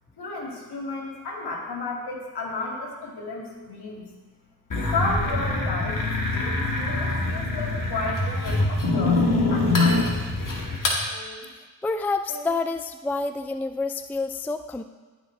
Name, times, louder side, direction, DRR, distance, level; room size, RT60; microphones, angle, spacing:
voice 1, 0.2-4.0 4.8-6.6 7.0-10.4, left 3 dB, 65° left, -1 dB, 2.3 m, -32 dB
sound 1, 4.7-11.0, left 2 dB, 50° left, 2.1 m, -24 dB
sound 2, 5.2-5.8 6.7-7.3 8.2-8.7 9.6-10.1 11.0-11.5 12.3-12.6, right 2 dB, 50° right, 2.1 m, -41 dB
voice 2, 11.8-14.8, left 3 dB, 5° left, 9 dB, 0.4 m, -28 dB
15.0 x 5.0 x 3.3 m, 1.4 s
supercardioid pair, 45°, 42 cm